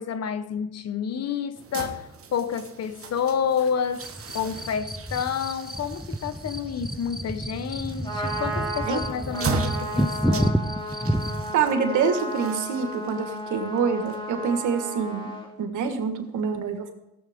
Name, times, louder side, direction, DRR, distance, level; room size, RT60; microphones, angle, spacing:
voice 1, 0.0-4.1 4.3-10.7, left 7 dB, 55° left, 0.9 m, -29 dB
sound 1, 1.6-14.6, right 4 dB, 50° right, 1.3 m, -38 dB
sound 2, 4.0-11.5, right 1 dB, ahead, 0.5 m, -30 dB
Trumpet, 7.9-15.5, right 1 dB, 15° left, 3.1 m, -34 dB
voice 2, 11.5-15.3 15.6-16.9, right 6 dB, 80° right, 1.5 m, -26 dB
17.0 x 7.2 x 3.5 m
cardioid pair, 90°, 30 cm